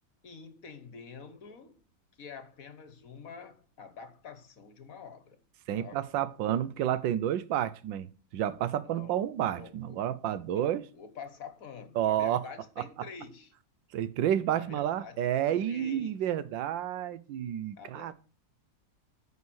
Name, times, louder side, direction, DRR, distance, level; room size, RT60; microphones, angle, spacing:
voice 1, 0.2-1.8 2.2-5.4 5.7-6.0 8.8-10.0 10.5-13.5 14.5-16.2 17.8-18.1, left 6 dB, 50° left, 1.4 m, -47 dB
voice 2, 5.7-8.1 8.3-10.8 12.0-12.4 13.9-18.1, right 11 dB, 80° right, 1.4 m, -30 dB
9.4 x 5.6 x 6.1 m
omnidirectional pair, 2.0 m